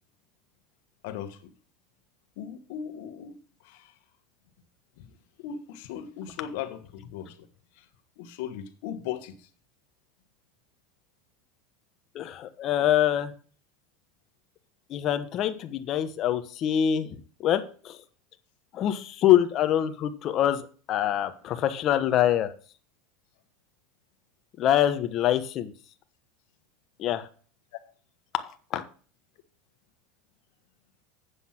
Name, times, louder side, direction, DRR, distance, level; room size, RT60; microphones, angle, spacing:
voice 1, 1.0-1.5 2.4-3.3 3.6-4.0 5.0-5.1 5.4-7.5 7.8-7.9 8.2-9.5, left 9 dB, 70° left, 9 dB, 1.5 m, -38 dB
voice 2, 12.1-13.3 14.9-18.0 18.7-20.6 20.9-22.5 24.6-25.7 27.0-27.3 28.3-28.4 28.7-28.8, left 11 dB, 40° left, 9 dB, 1.1 m, -25 dB
8.2 x 7.2 x 6.0 m, 0.41 s
supercardioid pair, 130°, 0 cm